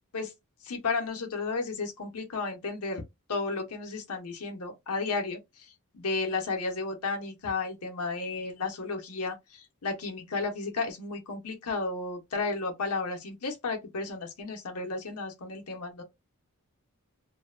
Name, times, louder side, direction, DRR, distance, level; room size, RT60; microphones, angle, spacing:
voice 1, 0.6-3.0 3.3-16.0, left 3 dB, 80° left, 0.8 m, -33 dB
2.7 x 2.1 x 2.4 m
head